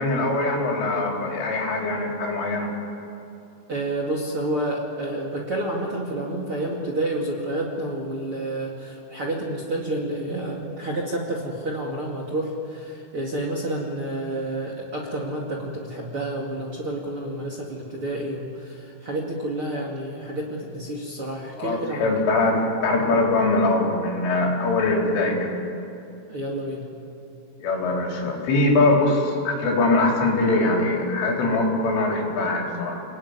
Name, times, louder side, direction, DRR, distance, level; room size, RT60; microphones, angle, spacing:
voice 1, 0.0-2.7 21.6-25.6 27.6-33.0, left 2 dB, 80° left, -1 dB, 6.5 m, -22 dB
voice 2, 3.7-22.1 26.3-26.9, right 1 dB, 40° right, 0 dB, 2.3 m, -29 dB
29.5 x 18.5 x 9.7 m, 2.8 s
omnidirectional pair, 5.6 m